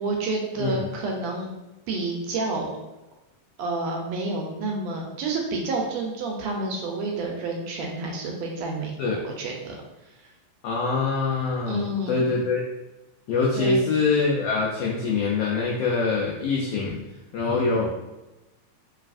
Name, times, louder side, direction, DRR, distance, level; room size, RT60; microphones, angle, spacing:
voice 1, 0.0-1.5 1.9-2.7 3.6-9.7 10.0-10.3 11.7-12.3 13.5-13.8, right 2 dB, 80° right, 0 dB, 1.7 m, -29 dB
voice 2, 10.6-12.6 13.3-17.0 17.3-17.9, left 4 dB, 85° left, -3 dB, 1.4 m, -24 dB
3.9 x 3.4 x 2.4 m, 1.0 s
omnidirectional pair, 3.3 m